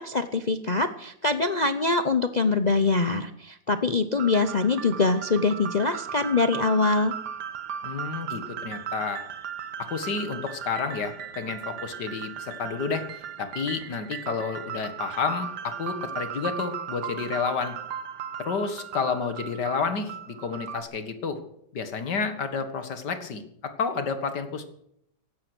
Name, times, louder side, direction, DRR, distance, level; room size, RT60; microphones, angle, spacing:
voice 1, 0.0-7.2, left 3 dB, 50° left, 10 dB, 0.5 m, -24 dB
sound 1, 4.2-20.8, right 8 dB, 70° right, 1.7 m, -37 dB
voice 2, 7.8-9.2 9.8-17.8 18.4-21.4 21.7-24.6, left 5 dB, 70° left, 9 dB, 2.3 m, -30 dB
15.5 x 12.0 x 6.2 m, 0.72 s
omnidirectional pair, 1.9 m